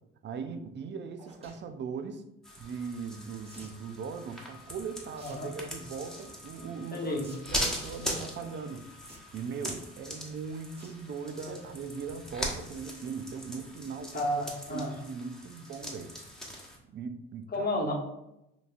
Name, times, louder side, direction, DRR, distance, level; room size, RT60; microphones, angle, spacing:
voice 1, 0.2-2.2 2.6-7.2 7.5-8.9 9.3-14.3 14.7-16.1 16.9-17.7, right 5 dB, 35° right, 10 dB, 0.4 m, -39 dB
sound 1, 1.2-1.6 3.4-3.8 5.1-5.4 5.7-6.1 7.2-7.4 7.7-7.8 9.0-9.5 10.8-11.0 11.4-11.6 12.0-12.1 12.3-12.4, right 1 dB, 15° right, 1.3 m, -52 dB
sound 2, 2.4-16.8, equal, ahead, 1.1 m, -40 dB
voice 2, 6.9-7.3 11.5-11.6 14.1-14.9 17.5-17.9, left 1 dB, 25° left, -1 dB, 1.1 m, -31 dB
4.6 x 2.7 x 2.5 m, 0.88 s
hypercardioid pair, 55°, 35 cm